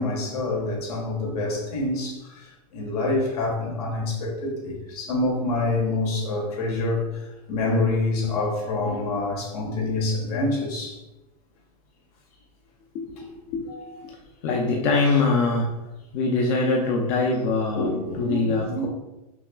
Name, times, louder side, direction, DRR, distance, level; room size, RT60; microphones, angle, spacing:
voice 1, 0.0-11.0 17.7-18.9, left 2 dB, 85° left, 1.4 m, -26 dB
voice 2, 13.5-14.1 14.4-15.7 16.1-17.9 18.2-18.9, left 3 dB, 45° left, 0.5 m, -23 dB
5.8 x 2.2 x 2.3 m
supercardioid pair, 155°, 19 cm